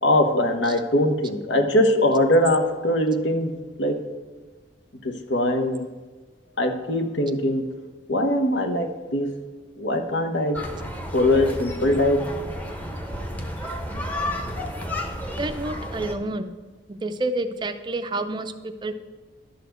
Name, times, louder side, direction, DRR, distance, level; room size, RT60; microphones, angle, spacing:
voice 1, 0.0-4.0 5.0-5.9 6.6-7.8 8.1-9.4 9.8-10.6 11.1-12.3, left 1 dB, 75° left, 5 dB, 1.0 m, -22 dB
sound 1, 10.5-16.1, left 1 dB, 10° left, 0.9 m, -32 dB
voice 2, 15.4-16.5 16.9-18.9, right 2 dB, 25° right, 9 dB, 0.4 m, -29 dB
11.5 x 4.2 x 8.0 m, 1.3 s
head